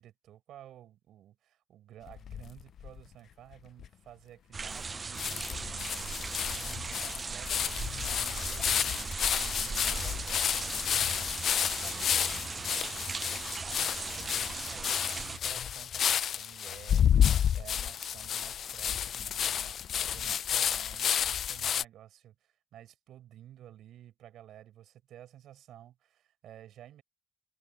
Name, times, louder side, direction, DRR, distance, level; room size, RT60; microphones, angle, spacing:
voice 1, 0.0-10.9 11.6-13.1 13.6-27.0, right 12 dB, 80° right, 7.6 m, -53 dB
sound 1, 2.1-3.0 3.5-3.6 3.8-3.9 4.8-4.9 5.2-21.8, left 9 dB, 60° left, 0.4 m, -30 dB
sound 2, 4.5-15.4, right 4 dB, 35° right, 0.4 m, -38 dB
cardioid pair, 90°, 0 cm